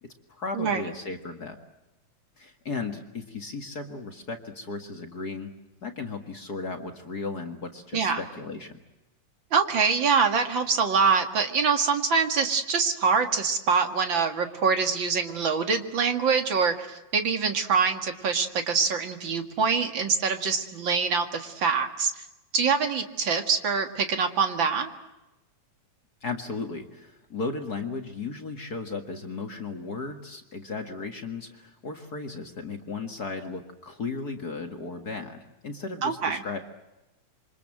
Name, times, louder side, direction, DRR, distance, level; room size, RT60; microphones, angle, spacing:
voice 1, 0.0-1.6 2.4-5.5 5.8-8.8 26.2-36.6, left 4 dB, 35° left, 5 dB, 2.0 m, -35 dB
voice 2, 9.5-22.1 22.5-24.9 36.0-36.4, right 5 dB, 45° right, 7 dB, 2.4 m, -24 dB
27.0 x 25.0 x 7.8 m, 0.98 s
omnidirectional pair, 3.3 m